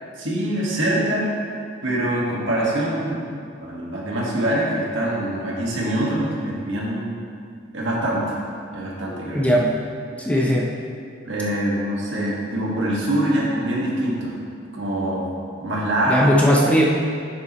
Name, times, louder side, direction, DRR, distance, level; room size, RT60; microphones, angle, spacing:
voice 1, 0.2-1.3 1.8-7.2 7.7-8.3 8.7-9.5 11.2-14.4 14.7-15.3 15.6-16.3, right 1 dB, 65° right, -5 dB, 1.8 m, -24 dB
voice 2, 9.3-9.7 10.2-10.7 16.1-16.9, equal, 5° left, -2 dB, 0.6 m, -18 dB
9.3 x 7.0 x 3.1 m, 2.4 s
head